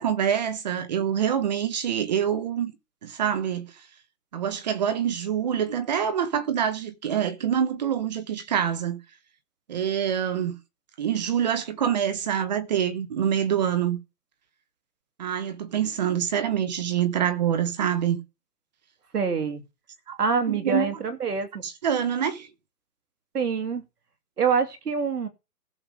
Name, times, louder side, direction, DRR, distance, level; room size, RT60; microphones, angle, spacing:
voice 1, 0.0-2.7 3.0-3.7 4.3-9.0 9.7-10.5 11.0-14.0 15.2-18.2 20.1-20.2 20.5-21.0 21.6-22.5, right 9 dB, 30° right, 1.0 m, -26 dB
voice 2, 19.1-19.6 20.2-21.6 23.3-23.8 24.4-25.3, right 5 dB, 80° right, 2.8 m, -25 dB
16.0 x 6.9 x 5.0 m
hypercardioid pair, 165°, 46 cm